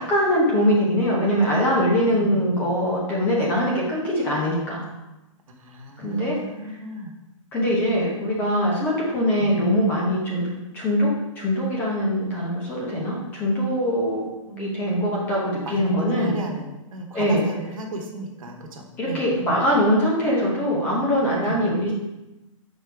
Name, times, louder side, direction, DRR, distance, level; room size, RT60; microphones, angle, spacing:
voice 1, 0.0-4.8 6.0-6.4 6.7-6.8 7.5-10.5 10.7-11.1 11.4-14.2 14.6-16.4 17.1-17.4 19.0-21.9, equal, 10° left, -4 dB, 0.9 m, -22 dB
voice 2, 2.1-2.6 5.5-7.1 9.4-9.7 14.5-15.2 15.6-19.5 21.4-21.6, right 2 dB, 85° right, 1 dB, 1.3 m, -35 dB
6.4 x 4.4 x 3.4 m, 1.0 s
hypercardioid pair, 175°, 17 cm